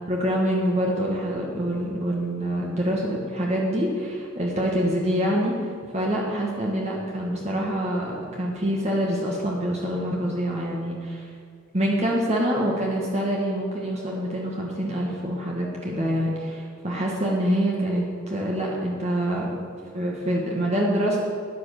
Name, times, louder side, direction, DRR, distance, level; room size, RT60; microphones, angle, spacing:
voice 1, 0.0-5.6 5.9-11.2 11.7-19.5 19.9-21.3, equal, 35° right, -3 dB, 1.9 m, -25 dB
13.0 x 10.0 x 6.7 m, 2.2 s
head